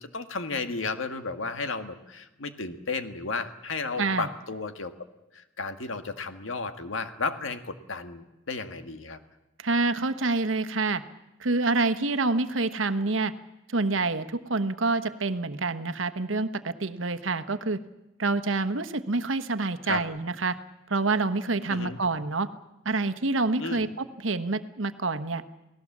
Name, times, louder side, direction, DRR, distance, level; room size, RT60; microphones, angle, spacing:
voice 1, 0.0-4.9 5.3-9.2 19.8-20.0 21.7-22.0 23.6-23.8, left 4 dB, 85° left, 8 dB, 1.7 m, -33 dB
voice 2, 9.6-11.0 11.4-13.3 13.7-17.8 18.2-20.6 20.9-22.5 22.8-25.4, right 3 dB, 80° right, 10 dB, 1.2 m, -27 dB
29.0 x 18.5 x 7.4 m, 1.0 s
head